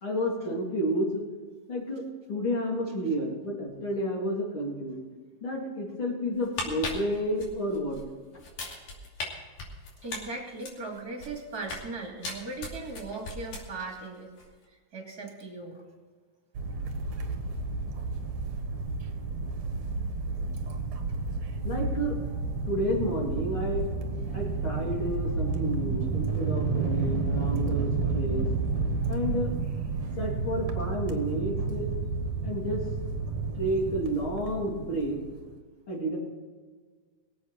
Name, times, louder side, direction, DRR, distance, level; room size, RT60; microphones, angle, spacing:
voice 1, 0.0-1.3 1.7-4.9 5.4-8.0 21.6-22.2 22.7-23.9 24.3-28.5 29.1-29.5 30.2-31.9 32.4-32.8 33.5-35.2 35.9-36.2, equal, 35° left, -2 dB, 4.1 m, -30 dB
sound 1, 6.3-8.0 8.4-9.3 9.6-11.9 12.2-14.0 14.3-14.5, left 3 dB, 75° left, 4.3 m, -37 dB
voice 2, 10.0-14.3 14.9-15.8, right 3 dB, 30° right, 0 dB, 3.2 m, -38 dB
sound 2, 16.5-35.5, right 4 dB, 60° right, 2.3 m, -31 dB
23.0 x 8.4 x 4.3 m, 1.5 s
omnidirectional pair, 3.8 m